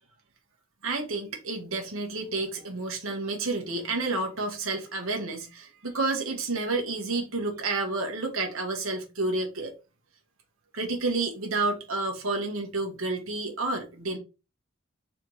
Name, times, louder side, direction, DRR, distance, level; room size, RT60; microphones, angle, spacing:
voice 1, 0.8-9.7 10.7-14.2, right 3 dB, 75° right, 1.5 m, -30 dB
4.2 x 3.2 x 3.9 m
head